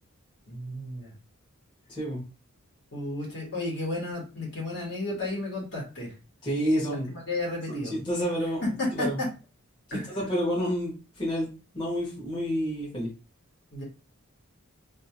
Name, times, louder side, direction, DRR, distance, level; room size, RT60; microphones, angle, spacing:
voice 1, 0.5-1.1 2.9-6.1 7.1-7.9 8.6-9.1 9.9-10.2 13.7-13.8, left 2 dB, 55° left, -3 dB, 1.5 m, -33 dB
voice 2, 1.9-2.2 6.4-7.1 7.7-8.6 8.9-9.2 9.9-13.1, equal, 20° left, -8 dB, 1.1 m, -29 dB
2.7 x 2.4 x 2.8 m, 0.33 s
head